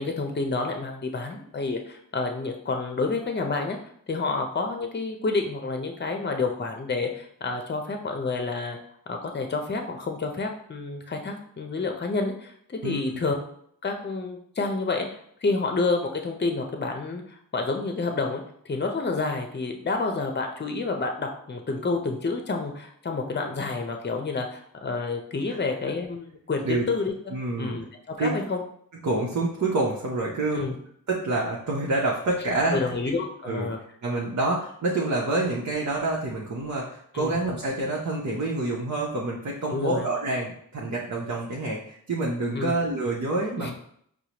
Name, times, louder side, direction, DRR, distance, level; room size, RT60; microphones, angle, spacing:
voice 1, 0.0-3.8 4.1-8.8 9.1-13.3 13.8-15.0 15.4-27.1 27.6-28.6 30.5-30.8 32.7-33.8 37.1-37.4 39.7-40.1 42.5-42.8 43.6-43.7, left 3 dB, 30° left, 4 dB, 0.7 m, -29 dB
voice 2, 12.8-13.2 25.5-25.6 26.6-26.8 27.3-27.8 28.2-28.3 29.0-30.6 31.1-32.8 33.4-33.7 34.0-43.7, right 2 dB, 55° right, -3 dB, 0.8 m, -27 dB
4.8 x 2.1 x 2.9 m, 0.66 s
cardioid pair, 50°, 35 cm